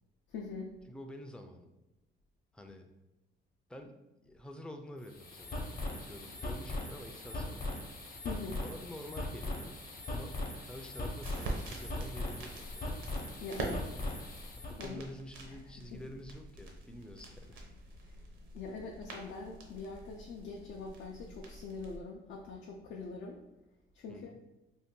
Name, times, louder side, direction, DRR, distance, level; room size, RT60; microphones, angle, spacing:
voice 1, 0.3-0.7 8.2-8.6 13.4-14.0 14.8-15.0 15.5-15.6 15.9-16.0 18.1-18.2 18.5-23.4 23.9-24.3, left 4 dB, 75° left, -1 dB, 0.4 m, -43 dB
voice 2, 0.9-1.7 2.5-2.9 3.7-7.9 8.6-9.8 10.1-13.1 14.6-17.7 24.1-24.4, left 1 dB, 5° left, 5 dB, 0.3 m, -48 dB
sound 1, 5.0-14.8, left 2 dB, 45° left, 0.8 m, -40 dB
sound 2, 10.7-22.0, right 2 dB, 80° right, 0.7 m, -45 dB
2.6 x 2.2 x 3.6 m, 0.96 s
cardioid pair, 90°, 20 cm